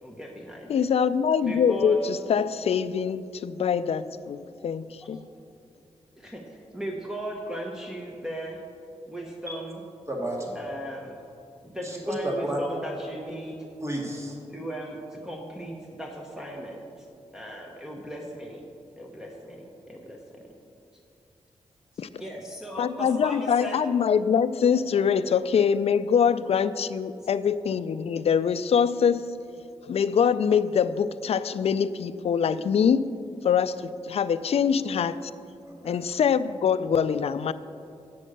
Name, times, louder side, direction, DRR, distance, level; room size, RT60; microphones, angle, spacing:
voice 1, 0.0-0.9 1.4-2.0 6.2-6.4 6.7-8.6 9.1-9.8 10.5-11.2 11.6-13.6 14.5-16.9 17.3-18.6 19.0-20.5 22.2-23.8, right 1 dB, 5° right, -1 dB, 1.0 m, -37 dB
voice 2, 0.7-5.3 22.0-22.1 22.8-29.3 29.8-33.1 33.4-35.3 35.8-37.5, left 7 dB, 65° left, 15 dB, 0.4 m, -24 dB
voice 3, 10.1-10.6 11.8-12.6 13.8-14.4 35.7-36.0, right 1 dB, 25° right, -1 dB, 2.1 m, -31 dB
8.6 x 6.2 x 6.6 m, 2.5 s
cardioid pair, 70°, 11 cm